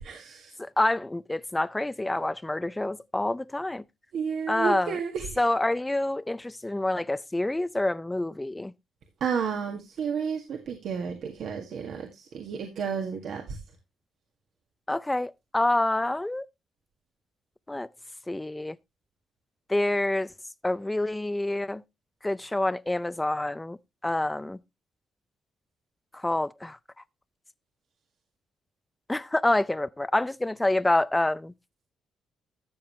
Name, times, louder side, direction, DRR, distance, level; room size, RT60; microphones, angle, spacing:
voice 1, 0.0-0.5 4.1-5.4 9.2-13.6, right 6 dB, 70° right, 1.8 m, -32 dB
voice 2, 0.6-3.8 4.5-5.0 5.4-8.7 14.9-16.4 17.7-17.9 18.3-18.8 19.7-20.3 20.6-21.8 22.2-23.8 24.0-24.6 26.1-26.8 29.1-31.5, left 1 dB, 10° left, 0.4 m, -27 dB
13.5 x 7.2 x 3.1 m
cardioid pair, 90°, 0 cm